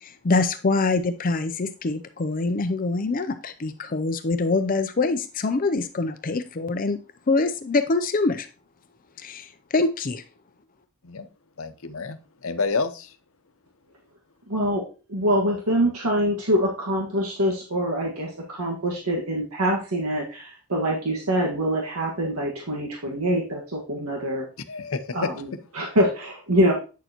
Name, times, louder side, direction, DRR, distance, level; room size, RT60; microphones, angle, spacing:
voice 1, 0.0-7.0 7.3-8.5 9.2-10.2, left 3 dB, 40° left, 9 dB, 0.5 m, -24 dB
voice 2, 11.6-13.1 24.7-25.3, left 4 dB, 70° left, 10 dB, 0.8 m, -29 dB
voice 3, 14.5-14.8 15.1-24.4 25.1-26.7, equal, 85° right, -1 dB, 1.7 m, -25 dB
9.2 x 6.7 x 3.0 m, 0.34 s
head